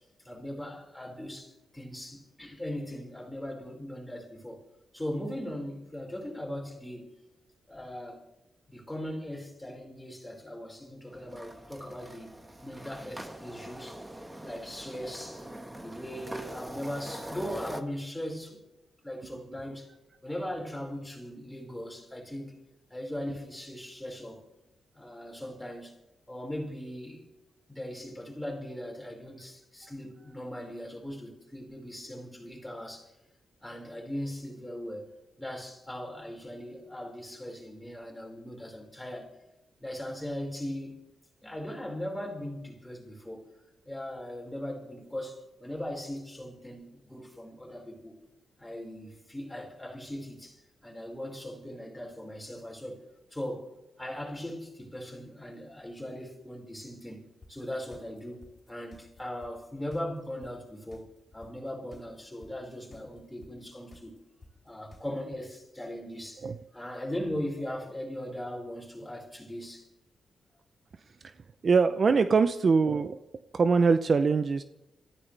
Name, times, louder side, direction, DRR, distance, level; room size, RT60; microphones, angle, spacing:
voice 1, 0.2-4.6 4.9-7.2 7.7-8.2 8.7-12.4 12.6-14.0 14.4-15.5 15.7-18.6 19.0-19.9 20.2-22.6 22.9-24.5 24.9-26.0 26.3-27.3 27.7-33.1 33.6-35.1 35.4-39.3 39.8-40.9 41.4-43.5 43.9-48.2 48.6-53.0 53.3-53.7 54.0-64.2 64.6-66.5 66.7-69.9, left 1 dB, 5° left, 5.3 m, -39 dB
sound 1, 11.1-17.8, right 1 dB, 10° right, 1.6 m, -43 dB
sound 2, 57.4-65.4, left 2 dB, 30° left, 4.5 m, -53 dB
voice 2, 71.6-73.2 73.5-74.6, right 5 dB, 45° right, 0.7 m, -23 dB
27.5 x 15.0 x 3.5 m
cardioid pair, 100°, 0 cm